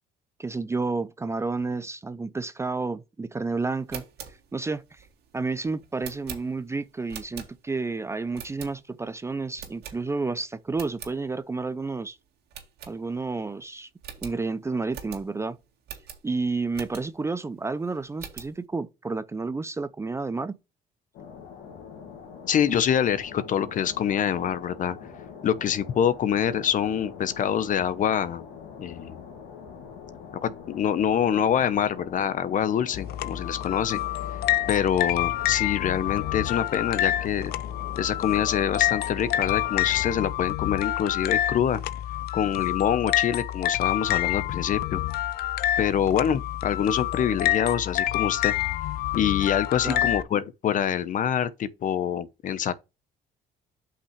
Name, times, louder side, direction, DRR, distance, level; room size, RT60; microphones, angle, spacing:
voice 1, 0.4-4.0 4.5-5.1 5.3-12.2 12.9-13.9 14.2-15.6 16.2-20.6 49.8-50.1, right 3 dB, 15° right, 0.5 m, -30 dB
sound 1, 3.7-7.9 8.3-9.1 9.6-10.4 10.7-11.2 11.6-11.7 11.9-12.1 12.5-13.4 13.7-13.8 14.0-17.3 17.8-18.6, right 8 dB, 75° right, 2.1 m, -43 dB
sound 2, 21.1-40.1, left 6 dB, 85° left, 2.1 m, -44 dB
voice 2, 22.5-25.0 25.4-28.4 28.8-29.2 30.4-34.0 34.7-37.5 38.0-41.8 42.3-45.0 45.8-48.5 49.1-52.7, left 9 dB, 50° left, 0.8 m, -25 dB
sound 3, 32.9-50.2, left 13 dB, 65° left, 0.5 m, -27 dB
8.3 x 5.8 x 3.2 m
cardioid pair, 110°, 17 cm